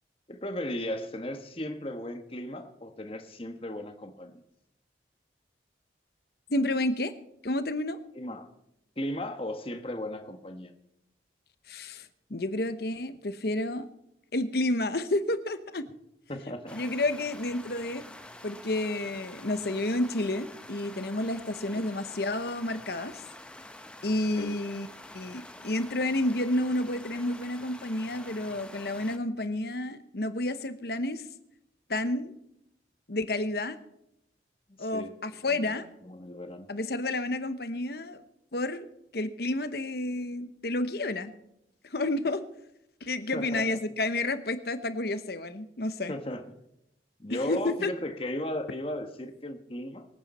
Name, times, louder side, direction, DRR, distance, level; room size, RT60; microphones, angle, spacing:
voice 1, 0.3-4.4 8.1-8.5 9.0-10.7 16.3-16.8 21.7-21.9 24.4-24.6 34.8-35.1 35.5-35.7 36.0-36.7 43.3-43.8 46.1-46.6 47.2-50.1, left 1 dB, 30° left, 7 dB, 1.3 m, -36 dB
voice 2, 6.5-7.1 7.4-8.0 11.7-13.9 14.3-15.9 16.7-18.0 18.4-23.2 24.0-24.9 25.1-31.2 31.9-32.3 33.1-33.8 34.8-35.8 36.7-38.2 38.5-38.9 39.1-41.3 41.9-42.4 43.0-46.1 47.3-47.9, left 2 dB, 55° left, 11 dB, 1.0 m, -30 dB
sound 1, 16.7-29.2, left 1 dB, 5° left, 0.8 m, -47 dB
24.0 x 8.9 x 4.3 m, 0.81 s
head